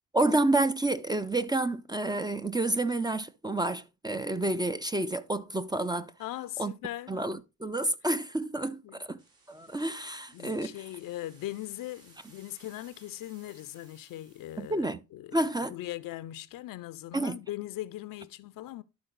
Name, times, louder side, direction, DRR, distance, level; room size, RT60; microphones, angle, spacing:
voice 1, 0.1-6.1 6.6-6.7 7.1-9.2 9.5-10.7 14.6-15.0 15.3-15.7 17.1-17.4, right 2 dB, 10° right, 0.5 m, -29 dB
voice 2, 6.2-7.1 8.8-9.0 10.3-15.4 15.7-18.8, left 15 dB, 60° left, 0.6 m, -40 dB
sound 1, 9.2-14.9, right 3 dB, 70° right, 4.1 m, -60 dB
11.5 x 3.9 x 3.9 m
hypercardioid pair, 45°, 38 cm